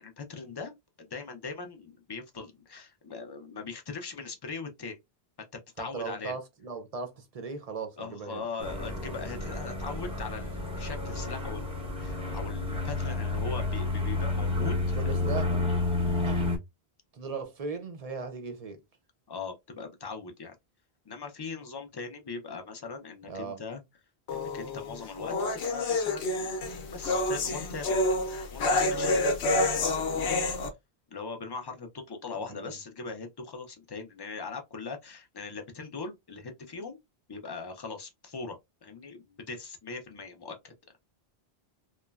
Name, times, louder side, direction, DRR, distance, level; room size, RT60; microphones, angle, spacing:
voice 1, 0.0-5.0 5.4-5.5 5.8-6.4 8.0-15.3 19.3-20.5 21.1-23.8 24.3-28.0 28.5-29.2 29.8-30.4 31.1-37.0 37.3-38.6 38.8-40.7, left 4 dB, 40° left, 0.3 m, -40 dB
voice 2, 5.8-8.4 14.9-15.5 16.2-16.5 17.1-18.8 23.3-23.6 32.4-32.7, right 4 dB, 50° right, 0.5 m, -38 dB
sound 1, 8.6-16.6, left 2 dB, 5° right, 0.6 m, -30 dB
sound 2, 24.3-30.7, left 2 dB, 80° left, 0.9 m, -28 dB
3.0 x 2.1 x 2.3 m
omnidirectional pair, 1.0 m